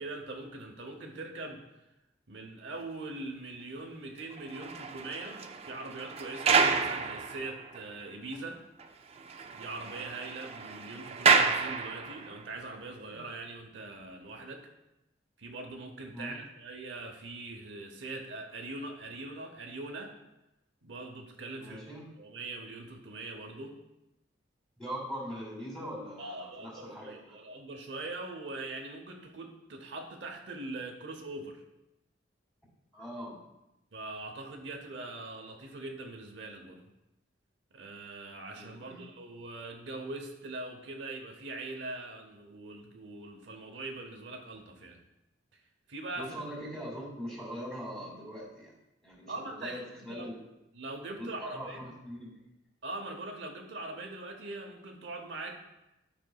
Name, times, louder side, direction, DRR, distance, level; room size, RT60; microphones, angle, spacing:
voice 1, 0.0-1.6 2.3-8.6 9.5-14.7 15.4-20.1 20.8-21.8 22.2-23.8 26.2-31.6 33.9-36.9 37.7-45.0 45.9-46.4 49.3-49.8 50.1-50.3 50.7-51.8 52.8-55.7, right 2 dB, 65° right, 2 dB, 0.8 m, -42 dB
sound 1, 4.3-8.0 8.3-8.4 8.8-8.9 9.2-12.4 13.1-13.3, right 5 dB, 30° right, 0.4 m, -30 dB
voice 2, 21.6-22.0 24.8-27.4 32.9-33.4 38.5-39.0 46.2-48.7 49.0-50.4 51.2-52.3, equal, ahead, -5 dB, 2.6 m, -41 dB
12.0 x 5.2 x 2.3 m, 0.94 s
head